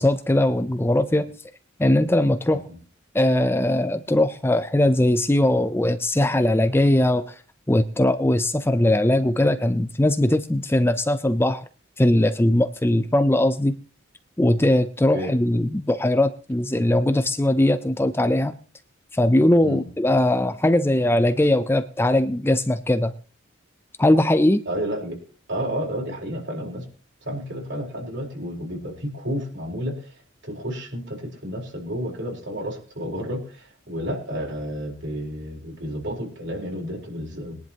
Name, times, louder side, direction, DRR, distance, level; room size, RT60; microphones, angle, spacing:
voice 1, 0.0-1.3 1.8-2.6 3.1-7.3 7.7-11.6 12.0-13.8 14.4-18.5 19.1-23.1 24.0-24.6, left 1 dB, 10° left, 0.5 m, -20 dB
voice 2, 24.7-25.2 25.5-26.8 27.2-30.1 30.4-37.6, equal, 60° right, 4.0 m, -31 dB
21.5 x 10.5 x 2.9 m
head